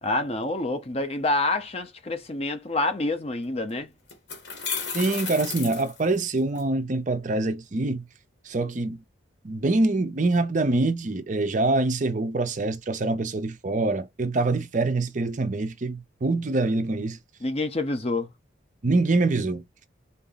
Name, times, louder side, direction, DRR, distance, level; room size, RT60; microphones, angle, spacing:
voice 1, 0.0-3.9 17.4-18.3, left 2 dB, 30° left, 0.6 m, -27 dB
sound 1, 3.4-3.5 4.1-6.6, left 6 dB, 60° left, 1.4 m, -33 dB
voice 2, 4.9-8.1 8.4-9.0 9.4-17.2 18.8-19.6, right 2 dB, 40° right, 0.5 m, -25 dB
3.9 x 2.6 x 3.9 m
head